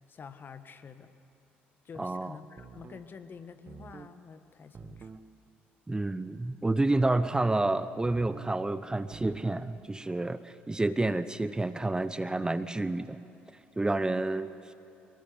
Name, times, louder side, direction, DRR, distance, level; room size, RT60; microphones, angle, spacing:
voice 1, 0.1-1.1 1.8-5.1, left 5 dB, 40° left, 10 dB, 1.5 m, -48 dB
voice 2, 2.0-2.4 5.9-13.2 13.8-14.5, right 2 dB, 15° right, 13 dB, 0.8 m, -29 dB
sound 1, 2.6-3.1 3.7-4.1 4.7-5.3 6.9-7.5 8.0-8.5 9.1-9.6, right 5 dB, 35° right, 1.2 m, -48 dB
23.5 x 23.0 x 9.6 m, 2.7 s
figure-of-eight pair, 50°, 6 cm